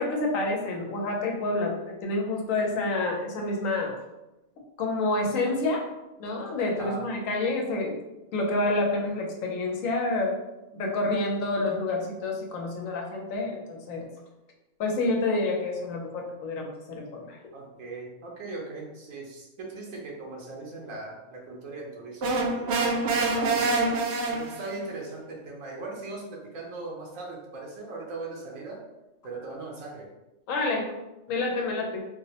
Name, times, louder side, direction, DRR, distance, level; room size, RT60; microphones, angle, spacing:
voice 1, 0.0-4.0 4.8-5.8 6.2-8.0 8.3-10.4 10.7-14.1 14.8-17.4 30.5-30.9 31.3-32.0, left 2 dB, 85° left, 0 dB, 1.1 m, -28 dB
voice 2, 17.5-24.0 24.3-28.8 29.2-30.1, right 3 dB, 80° right, -2 dB, 1.1 m, -39 dB
sound 1, 22.2-24.8, right 3 dB, 65° right, 0.7 m, -26 dB
4.2 x 2.0 x 2.7 m, 1.0 s
omnidirectional pair, 1.4 m